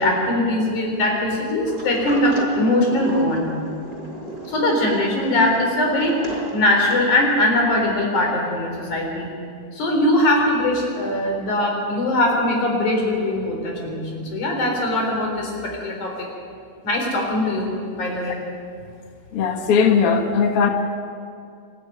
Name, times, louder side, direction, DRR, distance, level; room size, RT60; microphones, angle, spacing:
voice 1, 0.0-3.5 4.5-9.3 9.7-16.3 16.8-18.4, left 1 dB, 75° left, 0 dB, 5.7 m, -21 dB
Sliding door, 1.7-7.1, right 1 dB, 20° right, 4.8 m, -35 dB
voice 2, 19.3-20.7, left 6 dB, 55° left, 4 dB, 2.0 m, -18 dB
27.0 x 12.5 x 9.4 m, 2.3 s
omnidirectional pair, 3.5 m